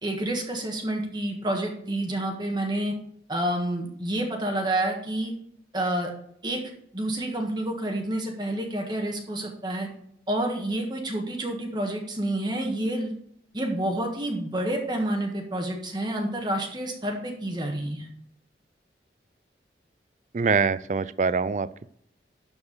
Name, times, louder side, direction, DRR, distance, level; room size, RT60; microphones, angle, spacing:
voice 1, 0.0-2.9 3.3-5.3 5.7-6.1 6.4-6.6 6.9-9.9 10.3-13.1 13.5-18.1, right 1 dB, 25° right, 1 dB, 1.5 m, -29 dB
voice 2, 20.3-21.9, right 5 dB, 40° right, 16 dB, 0.4 m, -24 dB
12.5 x 4.7 x 6.6 m, 0.67 s
head